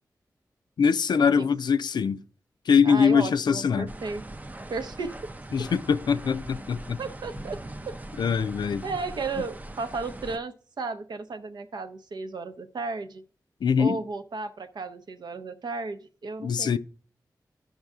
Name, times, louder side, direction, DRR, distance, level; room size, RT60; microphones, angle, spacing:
voice 1, 0.8-2.2 2.7-3.9 5.5-7.0 8.2-8.9 13.6-14.0 16.4-16.8, left 6 dB, 85° left, 0.4 m, -23 dB
voice 2, 2.8-4.2 4.7-5.3 7.0-7.6 7.9-8.0 8.8-13.2 13.8-16.8, right 3 dB, 80° right, 0.7 m, -34 dB
sound 1, 3.9-10.4, right 1 dB, 20° right, 0.4 m, -41 dB
14.5 x 5.4 x 2.4 m
cardioid pair, 60°, 7 cm